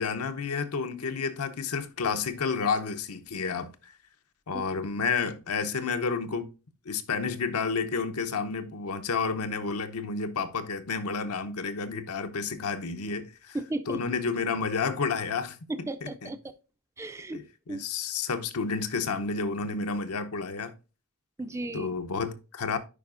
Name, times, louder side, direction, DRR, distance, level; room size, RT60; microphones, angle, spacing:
voice 1, 0.0-3.9 4.5-6.5 6.9-13.6 13.9-15.6 16.0-16.3 17.3-20.7 21.7-22.8, left 5 dB, 85° left, 0.8 m, -30 dB
voice 2, 13.5-14.0 15.7-16.4 17.0-17.4 17.7-17.8 21.4-21.9, right 2 dB, 15° right, 0.4 m, -34 dB
10.0 x 4.9 x 2.5 m
head